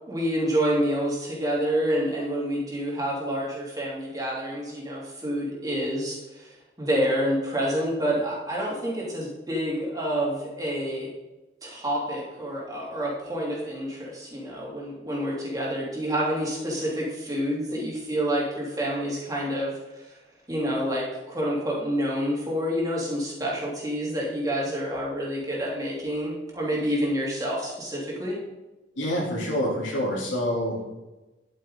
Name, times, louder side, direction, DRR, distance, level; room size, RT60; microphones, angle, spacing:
voice 1, 0.1-11.1 11.6-20.2 20.5-28.4, equal, 20° right, -4 dB, 2.6 m, -28 dB
voice 2, 29.0-30.9, equal, 85° left, -3 dB, 3.2 m, -27 dB
10.5 x 8.9 x 3.9 m, 1.1 s
head